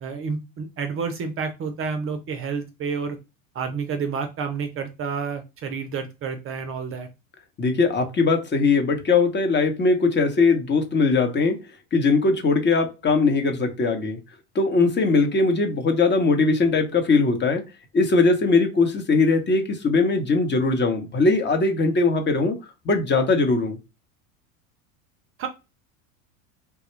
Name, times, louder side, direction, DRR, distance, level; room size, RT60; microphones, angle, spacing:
voice 1, 0.0-3.2 3.5-7.1 25.4-25.5, right 5 dB, 30° right, 7 dB, 0.6 m, -29 dB
voice 2, 7.6-11.5 11.9-14.2 14.5-17.6 17.9-22.6 22.8-23.8, left 3 dB, 25° left, 5 dB, 0.9 m, -20 dB
3.3 x 2.3 x 3.0 m, 0.27 s
hypercardioid pair, 95°, 42 cm